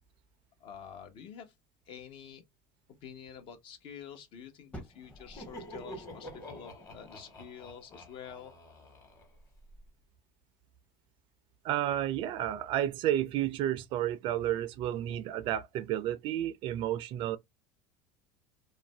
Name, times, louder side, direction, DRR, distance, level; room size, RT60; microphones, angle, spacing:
voice 1, 0.6-1.5 1.9-2.4 3.0-8.5, left 7 dB, 55° left, 0.8 m, -48 dB
Fire, 4.7-7.5 8.4-8.5, equal, 15° left, 0.7 m, -51 dB
Laughter, 5.1-9.8, equal, 35° left, 1.2 m, -48 dB
voice 2, 11.6-17.4, right 12 dB, 55° right, 0.4 m, -31 dB
2.4 x 2.1 x 3.2 m
supercardioid pair, 95°, 10 cm